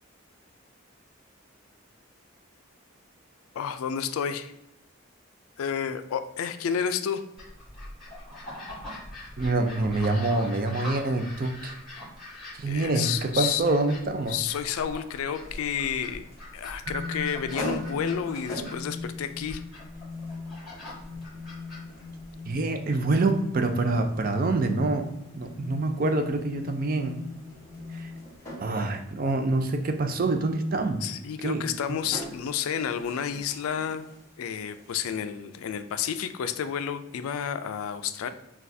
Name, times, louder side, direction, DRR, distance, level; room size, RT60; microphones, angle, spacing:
voice 1, 3.5-4.5 5.6-7.2 12.7-13.6 14.3-16.2 16.5-19.6 31.0-34.1 34.4-38.3, left 8 dB, 85° left, 10 dB, 0.3 m, -30 dB
sound 1, 7.4-22.6, left 1 dB, ahead, 1.4 m, -43 dB
voice 2, 9.4-11.7 12.5-14.3 22.5-25.1 25.4-27.1 27.9-28.1 28.6-31.0 31.4-32.0, right 2 dB, 40° right, 6 dB, 0.4 m, -26 dB
sound 2, 15.4-35.1, equal, 15° left, 1.1 m, -45 dB
sound 3, 16.9-28.6, left 3 dB, 75° right, 1.0 m, -40 dB
6.2 x 2.3 x 2.7 m, 0.86 s
head